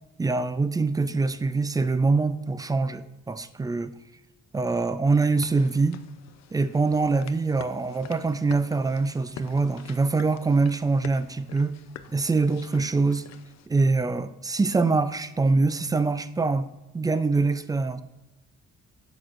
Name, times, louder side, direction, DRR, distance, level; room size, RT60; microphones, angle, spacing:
voice 1, 0.2-3.9 4.5-6.0 6.5-11.8 12.1-13.2 13.7-16.7 16.9-18.0, right 3 dB, 15° right, 12 dB, 0.3 m, -24 dB
sound 1, 5.3-13.7, left 10 dB, 60° left, 0.5 m, -47 dB
7.6 x 6.2 x 2.4 m, 1.0 s
cardioid pair, 90°, 30 cm